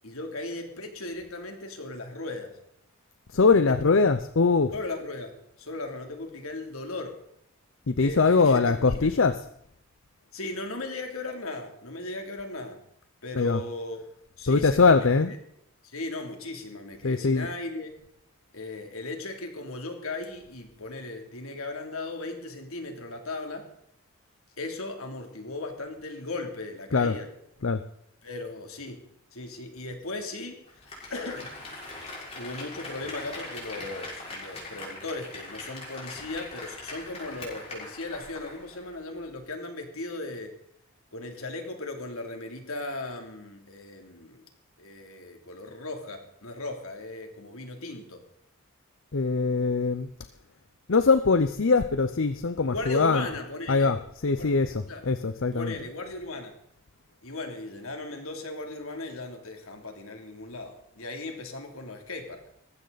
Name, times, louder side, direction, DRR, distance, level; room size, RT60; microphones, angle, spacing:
voice 1, 0.0-2.6 3.5-4.1 4.7-5.3 5.6-7.2 8.0-9.1 10.3-12.8 13.2-14.0 14.4-15.1 15.8-17.9 18.5-23.7 24.6-27.3 28.2-29.0 29.3-30.6 31.1-31.5 32.3-40.6 41.1-44.4 44.8-48.2 52.7-53.9 54.4-54.5 54.9-55.0 55.5-56.5 57.2-62.4, left 2 dB, 80° left, 4 dB, 3.0 m, -37 dB
voice 2, 3.3-4.7 7.9-9.4 13.3-13.6 14.5-15.3 17.0-17.5 26.9-27.2 27.6-27.8 49.1-50.1 50.9-53.3 53.7-55.7, left 4 dB, 65° left, 11 dB, 0.7 m, -22 dB
Applause, 30.7-38.9 39.2-39.3, left 2 dB, 30° left, 5.6 m, -41 dB
19.0 x 15.0 x 4.1 m, 0.74 s
head